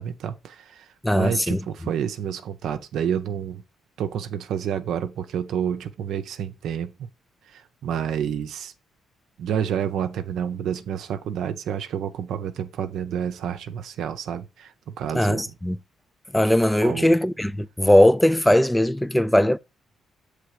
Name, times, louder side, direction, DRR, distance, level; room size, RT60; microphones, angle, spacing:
voice 1, 0.0-0.9 1.1-3.6 4.0-6.9 7.5-8.7 9.4-14.7 15.0-15.4 16.8-17.1, right 8 dB, 75° right, 0.6 m, -29 dB
voice 2, 1.0-1.6 15.1-15.8 16.3-19.6, left 1 dB, 5° left, 0.3 m, -19 dB
6.8 x 3.3 x 4.8 m
cardioid pair, 90°, 0 cm